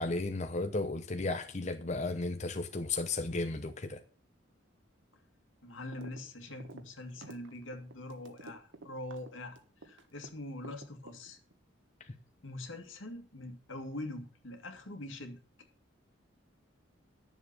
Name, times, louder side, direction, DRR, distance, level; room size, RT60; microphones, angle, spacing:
voice 1, 0.0-4.0 12.0-12.1, left 3 dB, 35° left, 0.8 m, -34 dB
voice 2, 5.6-11.4 12.4-15.4, left 1 dB, 85° left, 2.2 m, -43 dB
sound 1, 5.9-6.2 6.5-10.3 10.6-11.5, right 3 dB, 80° right, 1.5 m, -50 dB
11.5 x 7.3 x 7.0 m
head